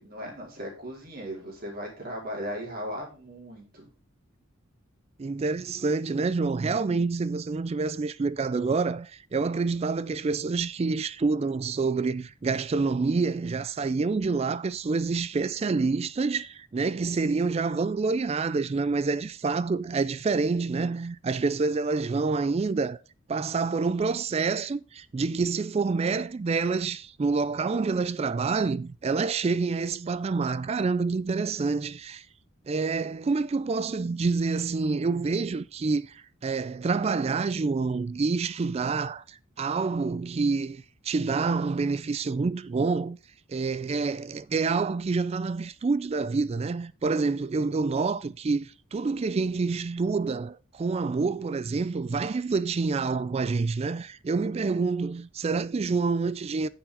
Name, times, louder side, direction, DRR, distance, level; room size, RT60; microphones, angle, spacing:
voice 1, 0.0-3.9, equal, 45° right, 4.3 m, -37 dB
voice 2, 5.2-23.0 23.3-32.3 32.7-43.2 43.5-56.7, right 4 dB, 30° right, 0.3 m, -27 dB
9.8 x 7.0 x 3.6 m
head